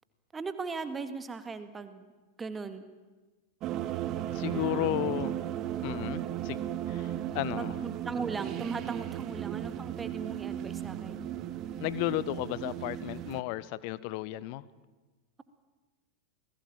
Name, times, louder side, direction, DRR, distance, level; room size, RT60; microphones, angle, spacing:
voice 1, 0.3-2.0 2.4-2.9 4.5-4.9 6.2-6.3 7.6-11.2, right 4 dB, 15° right, 2.0 m, -38 dB
sound 1, 3.6-13.4, right 11 dB, 35° right, 1.3 m, -35 dB
voice 2, 4.3-5.4 5.8-7.7 11.8-14.6, left 16 dB, 45° left, 1.1 m, -34 dB
29.0 x 20.0 x 9.0 m
figure-of-eight pair, 90°, 0 cm